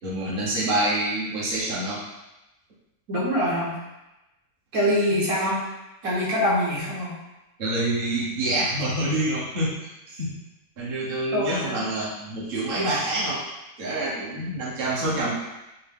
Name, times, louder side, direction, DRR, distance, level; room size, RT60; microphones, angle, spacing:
voice 1, 0.0-2.0 7.6-10.4 10.8-13.4 13.8-15.4, right 1 dB, 45° right, -7 dB, 1.0 m, -27 dB
voice 2, 3.1-3.7 4.7-5.6 6.0-7.1 11.3-11.9, equal, 70° right, -6 dB, 1.5 m, -24 dB
5.5 x 2.0 x 3.4 m, 0.98 s
omnidirectional pair, 1.6 m